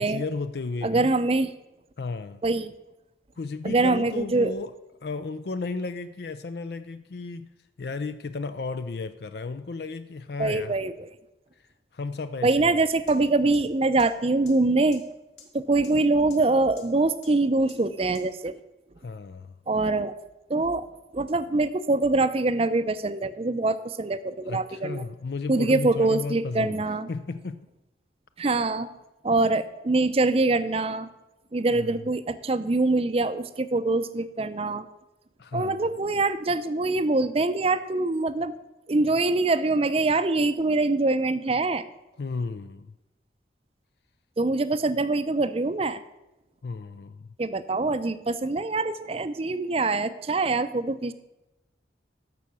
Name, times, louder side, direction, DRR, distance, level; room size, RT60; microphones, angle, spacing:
voice 1, 0.0-1.1 2.0-2.4 3.4-4.7 5.0-7.5 7.8-10.7 11.9-12.7 19.0-19.5 24.5-26.8 27.1-27.7 31.7-32.0 35.4-35.8 42.2-42.9 46.6-47.3, left 4 dB, 60° left, 11 dB, 0.4 m, -34 dB
voice 2, 0.8-1.5 2.4-2.7 3.6-4.5 10.4-11.1 12.4-15.0 15.5-18.6 19.7-20.1 20.5-20.9 21.1-25.0 25.5-27.1 28.4-28.9 29.2-31.1 31.5-34.9 35.5-38.5 38.9-41.8 44.4-46.0 47.4-51.1, right 2 dB, 35° right, 12 dB, 0.5 m, -24 dB
sound 1, 13.1-13.2 13.5-13.6 14.0-14.1 14.5-14.6 14.9-15.0 15.4-15.5 15.8-15.9 16.3-16.4 16.8-16.9 17.2-17.3 17.7-17.8 18.1-18.2, left 7 dB, 85° left, 2.5 m, -47 dB
13.5 x 5.7 x 6.3 m, 0.98 s
head